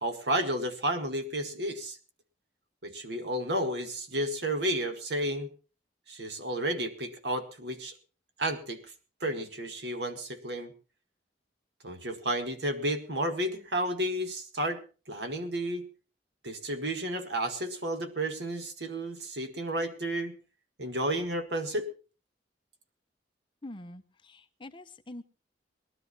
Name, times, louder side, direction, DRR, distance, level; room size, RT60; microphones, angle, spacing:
voice 1, 0.0-2.0 2.8-5.5 6.1-7.9 8.4-8.8 9.2-10.7 11.8-14.8 15.1-15.9 16.4-20.4 20.8-21.9, right 1 dB, 70° right, 7 dB, 2.0 m, -32 dB
voice 2, 23.6-25.2, left 1 dB, 30° left, 8 dB, 0.9 m, -45 dB
19.5 x 12.0 x 4.1 m, 0.36 s
head